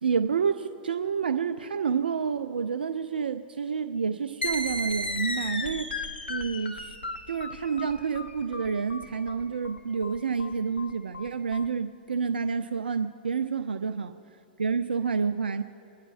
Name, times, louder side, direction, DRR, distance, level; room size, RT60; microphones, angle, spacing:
voice 1, 0.0-5.9 6.3-7.0 7.3-14.1 14.6-15.6, right 6 dB, 70° right, 9 dB, 0.4 m, -29 dB
sound 1, 4.4-11.7, left 1 dB, 80° left, 0.9 m, -35 dB
25.0 x 9.9 x 2.4 m, 2.6 s
figure-of-eight pair, 105°, 5 cm